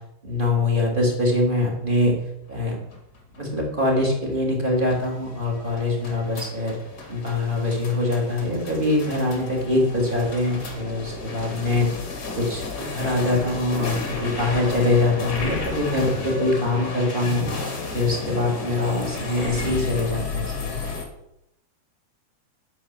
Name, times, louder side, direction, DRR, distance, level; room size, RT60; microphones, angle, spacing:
voice 1, 0.2-2.2 2.5-2.8 3.4-6.8 7.1-11.9 12.4-17.5 17.9-20.9, left 2 dB, 15° right, -1 dB, 2.8 m, -23 dB
sound 1, 2.4-21.0, left 4 dB, 35° left, 1.9 m, -33 dB
10.5 x 9.9 x 7.1 m, 0.83 s
omnidirectional pair, 4.9 m